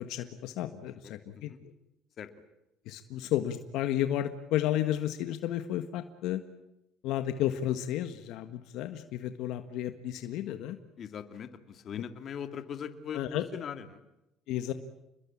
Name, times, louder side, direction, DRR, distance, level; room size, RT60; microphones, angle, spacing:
voice 1, 0.0-1.5 2.8-6.4 7.0-10.8 13.1-13.4 14.5-14.7, left 12 dB, 70° left, 9 dB, 1.6 m, -32 dB
voice 2, 1.0-1.6 2.2-2.3 11.0-14.0, left 8 dB, 40° left, 9 dB, 2.4 m, -41 dB
29.5 x 21.0 x 8.7 m, 0.89 s
cardioid pair, 130°, 0 cm